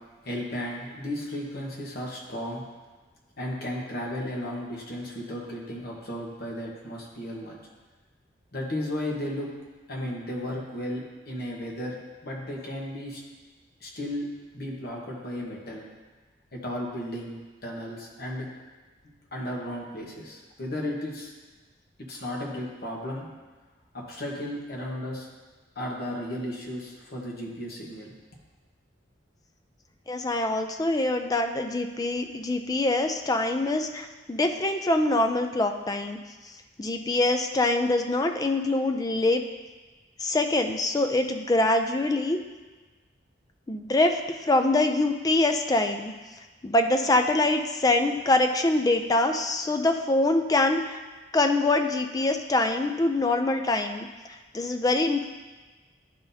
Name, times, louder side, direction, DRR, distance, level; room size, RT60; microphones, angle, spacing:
voice 1, 0.2-2.6 3.4-7.6 8.5-9.5 9.9-12.0 12.2-13.2 13.8-14.3 14.5-15.8 16.5-18.5 19.0-21.3 22.1-23.3 23.9-25.3 25.7-28.1, left 1 dB, 55° left, -2 dB, 1.2 m, -34 dB
voice 2, 30.1-36.2 36.8-39.4 40.2-42.4 43.7-46.1 46.6-51.0 51.3-54.1 54.5-55.2, left 2 dB, 20° left, 5 dB, 0.3 m, -24 dB
11.0 x 3.9 x 2.7 m, 1.3 s
head